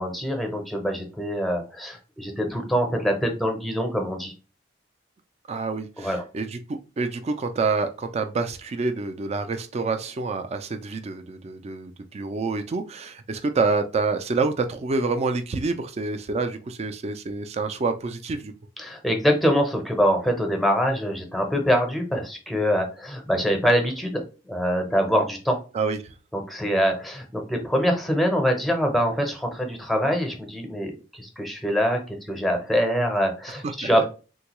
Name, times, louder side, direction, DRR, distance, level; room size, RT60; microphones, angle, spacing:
voice 1, 0.0-4.3 6.0-6.2 18.8-24.2 24.5-25.6 26.3-34.1, equal, ahead, 3 dB, 0.7 m, -24 dB
voice 2, 5.5-18.5 25.7-26.1 33.8-33.9, right 4 dB, 35° right, 8 dB, 0.4 m, -27 dB
3.6 x 2.3 x 2.9 m, 0.33 s
head